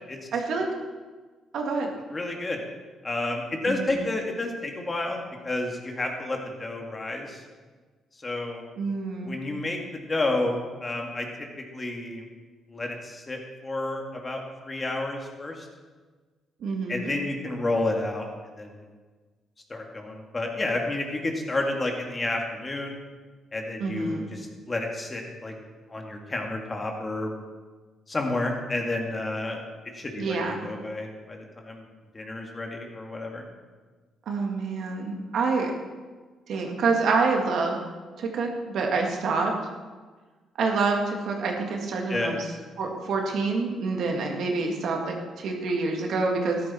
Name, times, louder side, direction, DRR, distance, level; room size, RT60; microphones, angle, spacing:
voice 1, 0.3-0.7 1.5-1.9 3.7-3.9 8.8-9.4 16.6-17.1 23.8-24.3 30.2-30.6 34.3-35.7 36.5-37.8 38.2-39.5 40.6-42.4 42.8-46.6, right 4 dB, 70° right, 1 dB, 2.2 m, -27 dB
voice 2, 2.1-2.6 3.0-7.4 8.2-8.6 9.2-11.3 11.7-12.2 12.7-15.7 16.9-18.3 18.6-18.8 19.7-23.0 23.5-25.5 25.9-27.3 28.1-29.6 29.9-31.8 32.1-33.4 42.1-42.3, left 2 dB, 25° left, 2 dB, 2.2 m, -30 dB
13.0 x 11.5 x 4.4 m, 1.4 s
cardioid pair, 90°, 0 cm